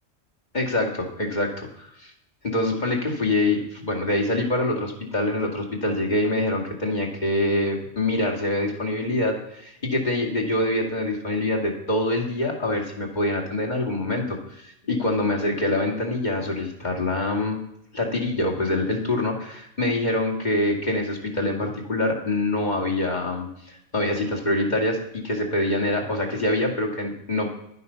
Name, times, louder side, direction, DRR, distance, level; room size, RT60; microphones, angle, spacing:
voice 1, 0.5-2.1 2.4-17.6 17.9-27.5, left 1 dB, 40° left, 0 dB, 2.5 m, -25 dB
11.5 x 9.4 x 5.7 m, 0.77 s
omnidirectional pair, 1.2 m